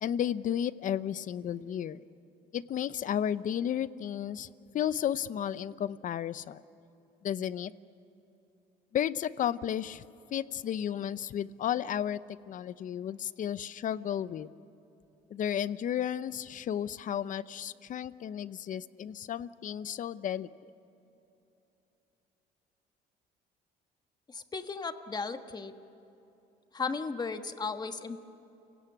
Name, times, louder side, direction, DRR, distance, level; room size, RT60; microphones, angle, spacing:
voice 1, 0.0-2.0 2.5-4.5 4.7-6.6 7.2-7.7 8.9-10.0 10.3-12.2 12.5-14.5 15.3-20.5, left 10 dB, 50° left, 16 dB, 0.7 m, -33 dB
voice 2, 24.3-25.7 26.7-28.2, left 4 dB, 25° left, 8 dB, 1.4 m, -35 dB
29.5 x 17.0 x 9.8 m, 3.0 s
cardioid pair, 110°, 17 cm